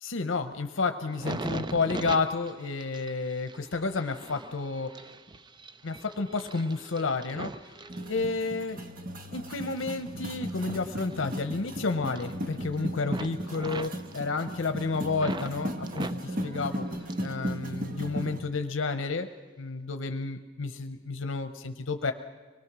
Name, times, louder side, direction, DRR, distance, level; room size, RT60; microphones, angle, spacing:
voice 1, 0.0-4.9 5.8-7.5 8.1-8.8 9.3-16.8 17.2-19.3 19.6-22.1, left 4 dB, 75° left, 8 dB, 0.8 m, -31 dB
sound 1, 1.0-8.7 9.2-11.8 12.0-12.7 13.0-15.5 15.9-17.4 17.7-18.4 19.0-19.2, right 2 dB, 25° right, 0.5 m, -42 dB
sound 2, 7.9-18.4, equal, 45° right, 1.3 m, -36 dB
24.5 x 20.0 x 6.1 m, 1.3 s
head